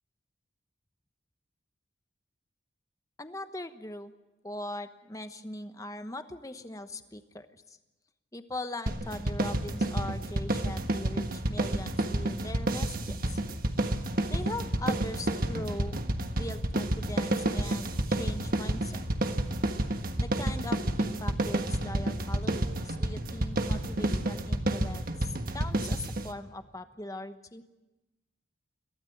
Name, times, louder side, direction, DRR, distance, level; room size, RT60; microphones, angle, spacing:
voice 1, 3.2-4.1 4.4-7.8 8.3-13.4 14.3-16.0 16.3-19.0 20.2-27.6, left 1 dB, 15° left, 9 dB, 1.0 m, -40 dB
sound 1, 8.9-26.3, right 1 dB, 45° right, 1.4 m, -30 dB
23.0 x 16.5 x 9.1 m, 1.0 s
head